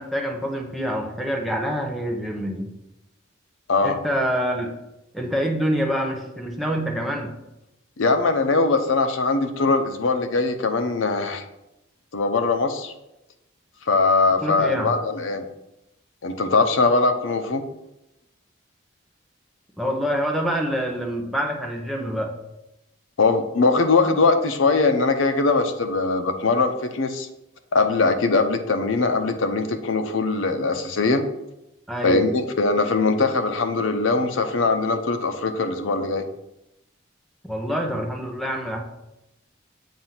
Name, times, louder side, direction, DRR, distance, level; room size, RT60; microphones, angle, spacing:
voice 1, 0.0-2.7 3.8-4.7 5.1-7.3 14.4-14.9 19.8-22.3 31.9-32.3 37.4-38.8, equal, ahead, 1 dB, 0.7 m, -26 dB
voice 2, 8.0-11.4 12.1-12.9 13.9-15.4 16.2-17.6 23.2-27.3 27.7-31.3 32.0-36.2, left 3 dB, 80° left, 6 dB, 0.6 m, -21 dB
7.3 x 2.6 x 5.7 m, 0.91 s
head